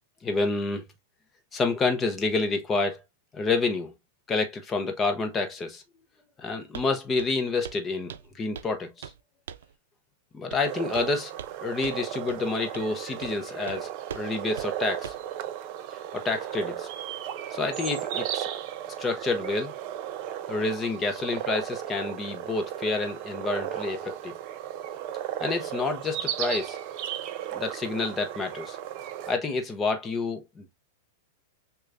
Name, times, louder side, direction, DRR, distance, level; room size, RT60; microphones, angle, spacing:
voice 1, 0.2-0.8 1.5-3.0 3.3-3.9 4.3-5.8 6.4-9.1 10.3-11.3 11.6-15.1 16.1-16.9 17.5-18.5 19.0-19.7 20.5-24.3 25.4-26.8 27.5-28.8 29.3-30.7, left 3 dB, 15° left, 0.7 m, -28 dB
Walk footsteps, 6.7-6.9 7.2-7.4 7.6-7.8 8.1-8.7 9.0-9.2 9.5-9.7 10.5-10.7 10.9-11.6 11.8-12.0 12.3-12.4 12.7-12.9 13.2-13.4 13.7-13.8 14.1-14.3 14.6-14.7 15.0-15.3, right 8 dB, 85° right, 0.4 m, -41 dB
sound 1, 10.6-29.4, right 11 dB, 40° right, 0.6 m, -35 dB
6.4 x 2.3 x 2.5 m
supercardioid pair, 165°, 0 cm